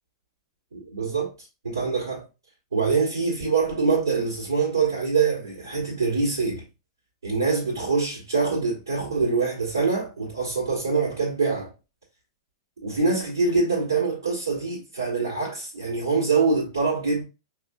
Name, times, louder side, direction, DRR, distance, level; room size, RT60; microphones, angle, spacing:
voice 1, 0.7-1.3 1.6-2.2 2.7-6.6 7.2-11.7 12.8-17.2, right 4 dB, 70° right, 1.3 m, -24 dB
5.2 x 2.4 x 2.3 m
figure-of-eight pair, 100°, 2 cm